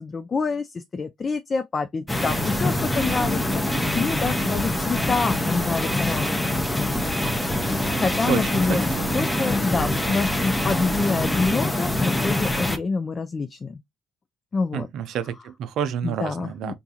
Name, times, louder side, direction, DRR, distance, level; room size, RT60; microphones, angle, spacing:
voice 1, 0.0-3.6 3.9-6.6 8.0-13.8 14.5-14.9 16.0-16.7, left 4 dB, 35° left, 0.4 m, -27 dB
sound 1, 2.1-12.8, left 1 dB, 10° left, 0.8 m, -24 dB
voice 2, 7.9-9.3 14.7-16.7, right 9 dB, 65° right, 0.5 m, -30 dB
3.8 x 2.3 x 2.8 m
supercardioid pair, 65°, 0 cm